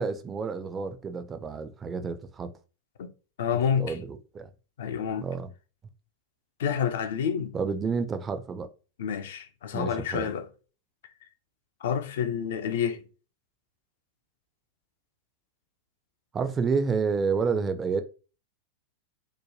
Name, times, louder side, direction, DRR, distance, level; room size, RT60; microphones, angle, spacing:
voice 1, 0.0-2.5 3.8-4.5 5.2-5.5 7.5-8.7 9.7-10.3 16.3-18.0, right 5 dB, 20° right, 0.3 m, -29 dB
voice 2, 3.4-4.0 4.8-5.3 6.6-7.5 9.0-10.5 11.8-13.0, left 7 dB, 60° left, 0.4 m, -28 dB
3.1 x 2.1 x 2.6 m
figure-of-eight pair, 90°, 0 cm